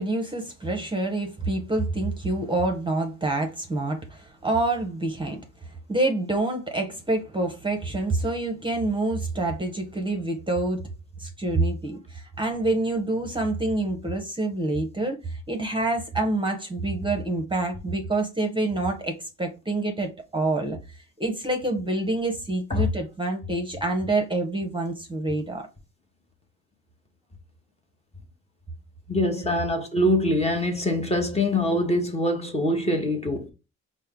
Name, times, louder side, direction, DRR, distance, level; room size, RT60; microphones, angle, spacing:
voice 1, 0.0-10.8 11.2-25.7, right 2 dB, 15° right, 0.8 m, -27 dB
voice 2, 29.1-33.5, left 1 dB, 20° left, 1.0 m, -24 dB
4.3 x 2.1 x 3.6 m
cardioid pair, 90°, 30 cm